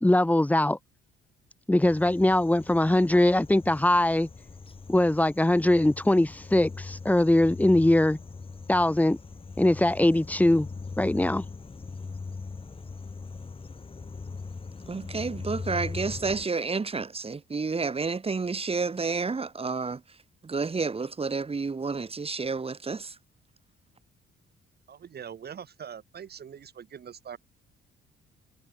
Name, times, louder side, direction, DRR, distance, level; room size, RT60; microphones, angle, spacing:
voice 1, 0.0-0.8 1.7-4.3 4.9-8.2 8.7-9.2 9.6-10.7 11.0-11.4, left 1 dB, 5° left, 1.4 m, -21 dB
sound 1, 1.8-16.5, left 4 dB, 30° left, 3.0 m, -40 dB
voice 2, 14.9-23.2, right 4 dB, 30° right, 4.6 m, -30 dB
voice 3, 24.9-27.4, right 8 dB, 55° right, 6.1 m, -42 dB
cardioid pair, 90°, 20 cm